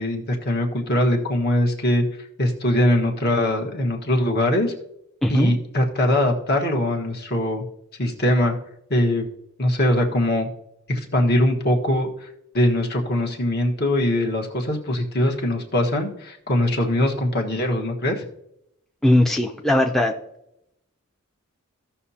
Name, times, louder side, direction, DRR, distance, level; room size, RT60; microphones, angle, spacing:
voice 1, 0.0-4.7 5.3-7.6 8.0-8.6 8.9-9.3 9.6-10.5 10.9-12.3 12.5-18.2, left 1 dB, 50° left, 2 dB, 1.4 m, -22 dB
voice 2, 5.2-5.5 19.0-20.1, left 1 dB, ahead, 2 dB, 0.5 m, -19 dB
15.5 x 5.9 x 2.8 m, 0.80 s
head